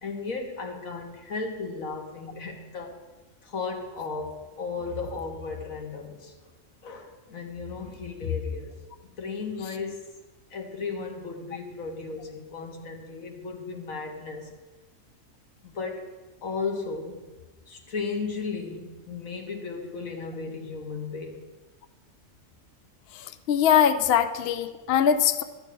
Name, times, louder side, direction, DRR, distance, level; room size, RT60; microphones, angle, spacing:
voice 1, 0.0-3.0 3.4-6.3 6.8-8.8 9.0-10.1 10.5-14.5 15.6-16.1 16.4-17.2 17.7-21.4, left 4 dB, 80° left, 4 dB, 1.7 m, -35 dB
voice 2, 23.5-25.4, left 9 dB, 60° left, 10 dB, 0.7 m, -21 dB
13.0 x 4.5 x 8.4 m, 1.2 s
omnidirectional pair, 1.4 m